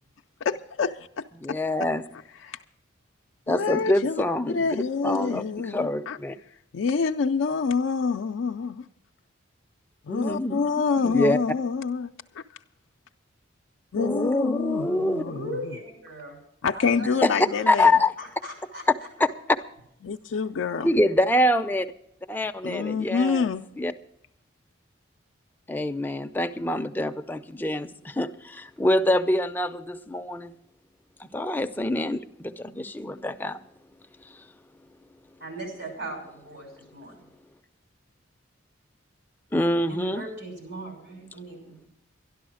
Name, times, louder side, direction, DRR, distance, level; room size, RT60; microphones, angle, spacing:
voice 1, 0.4-1.6 2.4-2.6 3.5-6.2 6.7-8.8 10.0-12.4 13.9-15.4 16.6-17.9 20.0-20.9 22.6-23.7, left 5 dB, 70° left, 0.4 m, -27 dB
voice 2, 1.4-2.0 3.5-4.7 5.0-6.4 10.1-10.6 11.0-11.4 13.9-15.2 17.2-17.3 17.7-18.1 20.8-21.9 22.3-23.5 23.8-23.9 25.7-30.5 31.3-33.6 39.5-40.2, left 1 dB, 10° left, 0.5 m, -25 dB
voice 3, 15.2-16.4 16.7-17.6 18.2-19.1 35.4-37.2 39.9-41.9, right 1 dB, 70° right, 6.0 m, -39 dB
12.5 x 11.5 x 6.2 m
head